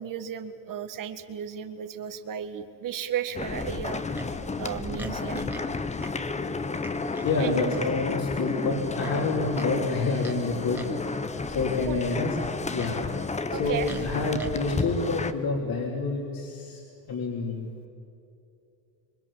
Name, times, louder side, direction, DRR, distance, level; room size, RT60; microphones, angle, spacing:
voice 1, 0.0-4.2 4.6-5.4 7.4-7.7 11.9-12.0 13.5-13.9, right 8 dB, 45° right, 9 dB, 1.9 m, -34 dB
sound 1, 3.3-15.3, left 3 dB, 15° left, 1.0 m, -32 dB
Livestock farm animals working animals, 4.2-4.3 5.0-5.7 6.0-6.2 6.8-7.3 7.7-7.9 9.0-9.7 10.2-10.4 10.7-11.0 12.4-13.0 13.8-14.5, right 1 dB, 5° right, 2.1 m, -41 dB
voice 2, 7.2-11.2 11.5-12.4 12.7-13.1 13.5-16.8 17.1-17.8, left 3 dB, 50° left, -1 dB, 3.9 m, -28 dB
27.0 x 24.0 x 7.5 m, 2.7 s
cardioid pair, 140°, 45 cm